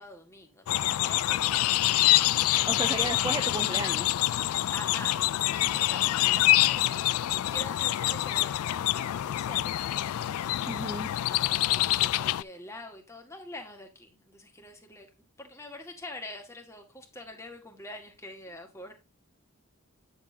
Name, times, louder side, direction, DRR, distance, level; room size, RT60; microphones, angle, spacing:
voice 1, 0.0-2.2 3.0-3.2 4.7-10.9 11.3-15.1 15.4-18.9, left 1 dB, 15° left, 1.9 m, -45 dB
sound 1, 0.7-12.4, left 15 dB, 80° left, 0.3 m, -26 dB
voice 2, 2.7-4.2 10.7-11.1, right 2 dB, 20° right, 0.4 m, -34 dB
9.7 x 7.1 x 2.8 m
head